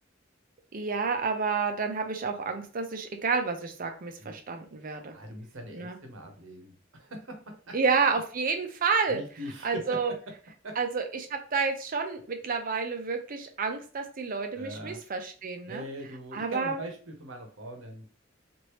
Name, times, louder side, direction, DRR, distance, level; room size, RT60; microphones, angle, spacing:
voice 1, 0.7-5.1 5.7-6.0 7.7-9.2 9.6-10.1 10.8-15.8 16.3-16.8, right 5 dB, 45° right, 5 dB, 0.6 m, -30 dB
voice 2, 4.8-7.8 9.1-10.0 10.6-10.8 14.5-15.0 15.7-18.0, right 1 dB, 85° right, 3 dB, 0.9 m, -41 dB
3.1 x 2.6 x 3.1 m, 0.39 s
head